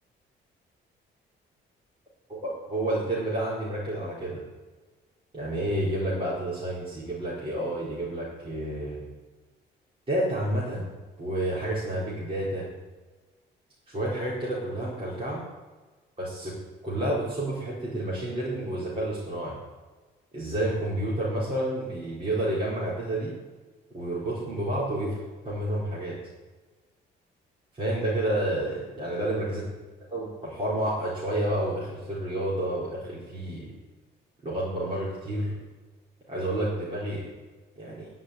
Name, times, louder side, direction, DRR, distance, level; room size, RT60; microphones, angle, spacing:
voice 1, 2.3-4.4 5.3-9.0 10.1-10.8 11.2-12.7 13.9-15.4 16.2-16.5 16.8-19.5 20.3-23.3 23.9-25.2 25.4-26.2 27.7-29.6 30.1-33.7 34.4-35.5 36.3-37.3 37.8-38.1, right 1 dB, 30° right, -8 dB, 4.6 m, -30 dB
11.5 x 5.8 x 9.0 m, 1.3 s
cardioid pair, 90°, 20 cm